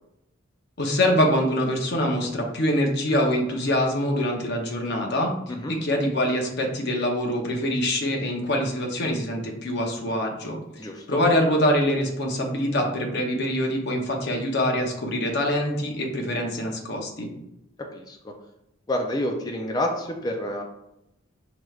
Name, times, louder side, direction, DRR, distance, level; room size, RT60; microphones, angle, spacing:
voice 1, 0.8-5.4 5.7-17.3, left 1 dB, 55° left, 2 dB, 0.7 m, -24 dB
voice 2, 10.8-11.2 17.8-18.3 18.9-20.6, left 1 dB, 20° left, 2 dB, 0.4 m, -29 dB
4.9 x 3.1 x 2.3 m, 0.85 s
head